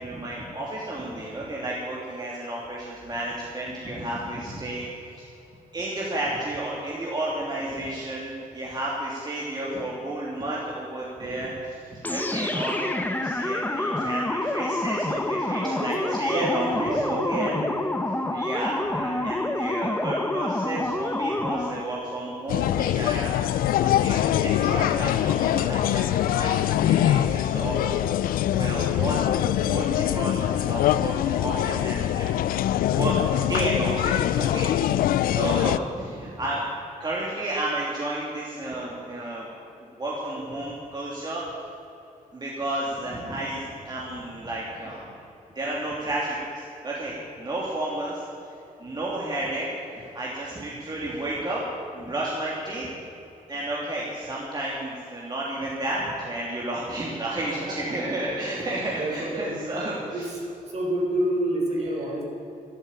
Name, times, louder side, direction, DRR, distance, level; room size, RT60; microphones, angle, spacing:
voice 1, 0.0-4.9 5.1-5.3 5.7-17.6 18.3-32.4 32.9-36.6 37.0-39.5 39.8-41.4 42.3-45.0 45.5-48.2 48.8-51.6 51.9-52.9 53.5-60.3, right 1 dB, 30° right, -5 dB, 3.0 m, -32 dB
sound 1, 12.0-21.9, left 1 dB, 10° left, 1.1 m, -27 dB
voice 2, 15.6-17.8 57.4-57.7 58.1-58.2 58.6-58.7 59.0-59.6 60.1-60.2 60.7-62.2, right 1 dB, 50° right, -1 dB, 4.7 m, -29 dB
sound 2, 22.5-35.8, left 12 dB, 90° left, 0.4 m, -23 dB
12.5 x 11.0 x 8.9 m, 2.7 s
cardioid pair, 90°, 15 cm